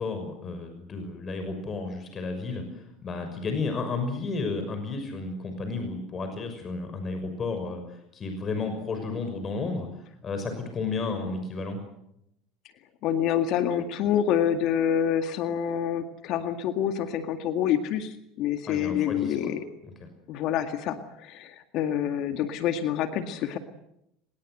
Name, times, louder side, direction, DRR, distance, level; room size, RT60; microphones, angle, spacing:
voice 1, 0.0-9.9 10.2-11.8 18.7-19.5 20.0-20.1, left 3 dB, 35° left, 6 dB, 6.0 m, -32 dB
voice 2, 13.0-19.7 20.3-23.6, left 9 dB, 55° left, 8 dB, 2.0 m, -27 dB
25.5 x 21.5 x 8.0 m, 0.81 s
hypercardioid pair, 80°, 0 cm